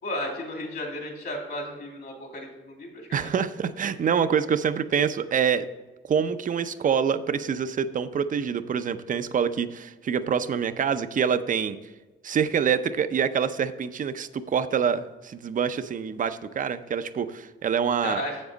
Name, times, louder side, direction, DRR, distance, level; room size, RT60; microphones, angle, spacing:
voice 1, 0.0-3.3 18.0-18.4, left 1 dB, 55° left, 1 dB, 2.8 m, -34 dB
voice 2, 3.1-5.7 6.1-11.8 12.2-18.2, right 7 dB, 40° right, 11 dB, 0.6 m, -26 dB
7.8 x 7.3 x 3.9 m, 1.2 s
cardioid pair, 90°, 20 cm